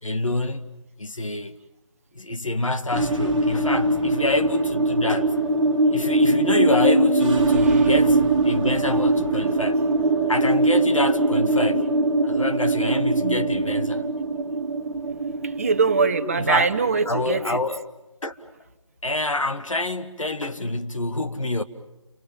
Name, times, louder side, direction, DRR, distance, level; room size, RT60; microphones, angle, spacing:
voice 1, 0.0-0.7 1.0-1.5 2.1-5.3 5.9-9.8 10.3-11.9 12.2-14.0 16.4-16.7 17.1-17.8 18.2-18.4 19.0-21.6, left 2 dB, 80° left, 2.1 m, -26 dB
sound 1, 2.9-17.6, right 2 dB, 5° right, 2.0 m, -22 dB
voice 2, 15.4-17.6, right 4 dB, 30° right, 1.2 m, -23 dB
29.5 x 24.5 x 7.5 m
figure-of-eight pair, 170°, 16 cm